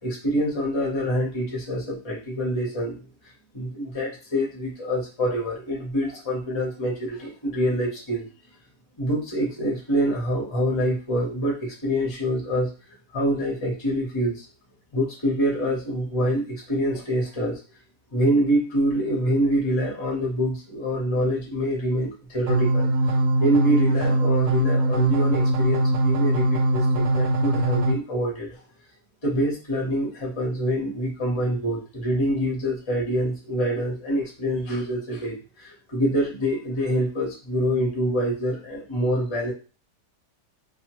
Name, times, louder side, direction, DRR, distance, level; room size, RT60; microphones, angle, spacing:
voice 1, 0.0-3.0 3.5-8.3 9.0-12.7 13.1-14.4 14.9-17.6 18.1-22.9 23.4-28.6 29.2-39.5, equal, 25° left, -3 dB, 0.7 m, -25 dB
sound 1, 22.5-27.9, right 1 dB, 85° right, 1.3 m, -21 dB
2.8 x 2.4 x 3.0 m, 0.34 s
omnidirectional pair, 1.9 m